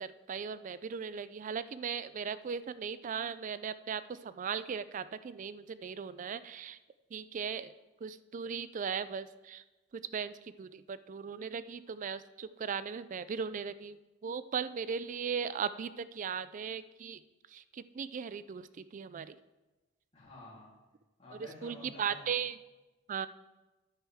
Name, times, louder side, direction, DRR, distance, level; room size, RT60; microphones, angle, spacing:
voice 1, 0.0-6.8 7.1-7.7 8.0-9.6 9.9-17.2 17.5-19.4 21.4-22.6 23.1-23.3, right 6 dB, 40° right, 15 dB, 0.3 m, -38 dB
voice 2, 20.1-20.7 21.2-22.3, left 2 dB, 35° left, -6 dB, 3.3 m, -51 dB
10.5 x 8.9 x 3.5 m, 1.1 s
head